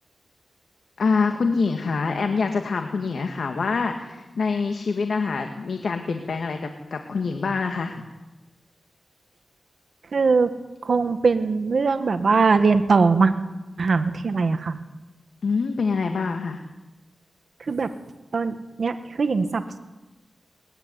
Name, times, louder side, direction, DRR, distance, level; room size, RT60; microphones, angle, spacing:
voice 1, 1.0-8.1 15.4-16.6, left 4 dB, 85° left, 5 dB, 2.0 m, -25 dB
voice 2, 10.1-10.5 10.8-13.3 13.8-14.8 17.6-18.0 18.3-19.8, right 4 dB, 70° right, 9 dB, 1.6 m, -21 dB
22.0 x 21.0 x 9.7 m, 1.1 s
wide cardioid pair, 80°, 0 cm